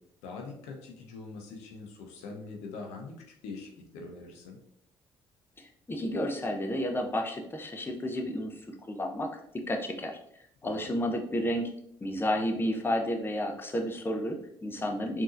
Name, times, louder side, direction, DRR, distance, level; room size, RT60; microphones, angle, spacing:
voice 1, 0.2-4.6 10.6-10.9, left 3 dB, 80° left, 1 dB, 0.6 m, -43 dB
voice 2, 5.6-8.6 8.9-9.4 9.7-10.2 10.6-11.7 12.0-15.2, equal, 20° left, 3 dB, 0.6 m, -31 dB
3.7 x 2.7 x 2.5 m, 0.70 s
hypercardioid pair, 55°, 11 cm